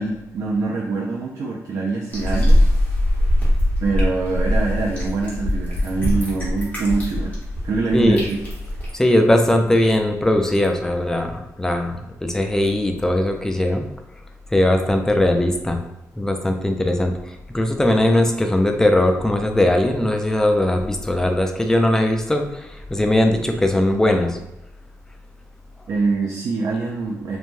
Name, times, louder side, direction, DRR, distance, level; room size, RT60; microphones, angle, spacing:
voice 1, 0.0-2.7 3.8-7.4 7.6-8.4 25.9-27.4, right 3 dB, 60° right, -2 dB, 0.4 m, -24 dB
sound 1, 2.1-8.9, equal, 30° left, 1.1 m, -21 dB
voice 2, 7.9-8.2 8.9-13.9 14.5-15.8 16.2-24.4, left 1 dB, 10° left, 4 dB, 0.4 m, -19 dB
3.1 x 2.2 x 2.5 m, 0.92 s
cardioid pair, 115°, 6 cm